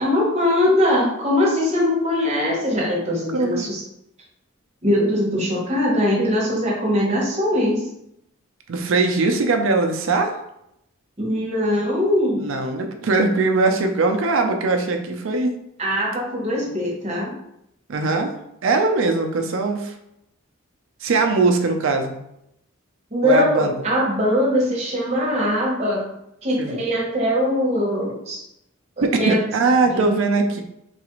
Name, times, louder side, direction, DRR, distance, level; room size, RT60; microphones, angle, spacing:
voice 1, 0.0-3.8 4.8-7.9 11.2-12.5 15.8-17.3 23.1-26.1 26.4-28.4 29.0-29.4 29.9-30.1, left 1 dB, 30° right, -4 dB, 1.0 m, -21 dB
voice 2, 3.3-3.7 8.7-10.4 12.4-15.5 17.9-18.3 18.6-19.9 21.0-22.2 23.2-23.7 26.6-26.8 29.0-30.6, right 3 dB, 65° right, 5 dB, 0.5 m, -20 dB
3.9 x 2.4 x 3.0 m, 0.80 s
head